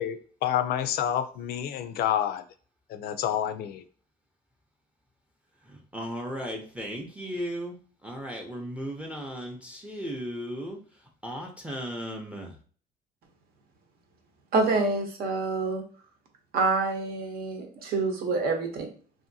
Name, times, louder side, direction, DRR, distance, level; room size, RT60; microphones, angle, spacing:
voice 1, 0.0-2.4 2.9-3.8, left 10 dB, 65° left, 10 dB, 0.4 m, -28 dB
voice 2, 5.7-7.8 8.0-10.8 11.2-12.5, equal, 5° right, 2 dB, 0.5 m, -36 dB
voice 3, 14.5-15.8 16.5-18.9, right 3 dB, 65° right, 4 dB, 0.8 m, -27 dB
2.7 x 2.6 x 2.6 m, 0.42 s
cardioid pair, 110°, 17 cm